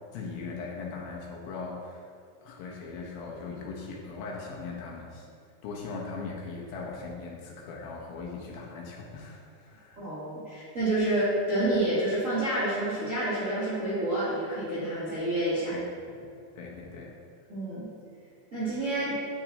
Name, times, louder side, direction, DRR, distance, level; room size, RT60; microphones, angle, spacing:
voice 1, 0.1-2.1 2.4-5.3 5.6-10.0 15.7-16.3 16.6-17.1, left 4 dB, 75° left, -2 dB, 2.5 m, -39 dB
voice 2, 10.0-15.7 17.5-17.9 18.5-19.1, right 1 dB, 45° right, -12 dB, 1.1 m, -28 dB
9.1 x 5.8 x 2.7 m, 2.3 s
omnidirectional pair, 4.5 m